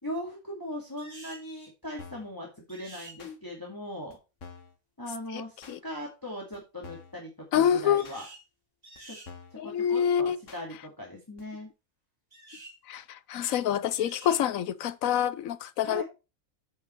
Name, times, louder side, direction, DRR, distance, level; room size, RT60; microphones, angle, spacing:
voice 1, 0.0-4.2 5.0-8.3 9.1-9.2 9.6-11.7 15.8-16.0, equal, 15° left, 2.3 m, -39 dB
sound 1, 1.0-1.5 2.7-3.2 8.0-8.4 8.8-9.3 12.3-12.8 13.9-14.4, right 2 dB, 30° right, 2.7 m, -48 dB
sound 2, 2.0-2.3 3.2-3.4 4.1-4.2 4.4-4.8 5.6-5.8 6.5-6.6 6.8-7.2 8.0-8.2 8.9-9.0 9.3-9.6 10.5-10.6 11.4-11.5, left 5 dB, 70° left, 1.7 m, -47 dB
voice 2, 7.5-8.0 9.6-10.4 12.9-16.0, left 9 dB, 90° left, 1.1 m, -26 dB
8.1 x 5.6 x 4.5 m
omnidirectional pair, 1.4 m